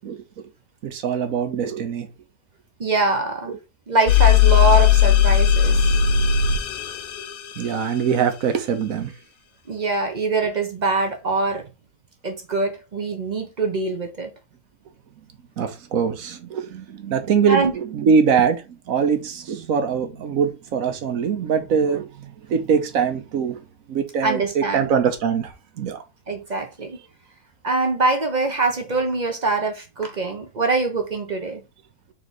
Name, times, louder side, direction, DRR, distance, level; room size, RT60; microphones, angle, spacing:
voice 1, 0.8-2.1 3.5-3.6 7.6-9.1 15.6-23.6 23.9-26.0, right 6 dB, 65° right, 1.1 m, -23 dB
voice 2, 2.8-3.5 3.9-5.8 9.7-11.6 12.2-14.3 17.5-17.7 24.2-24.9 26.3-27.0 27.6-31.6, right 3 dB, 40° right, 0.7 m, -23 dB
sound 1, 4.1-7.6, left 9 dB, 70° left, 0.9 m, -17 dB
4.0 x 3.2 x 4.0 m
omnidirectional pair, 1.7 m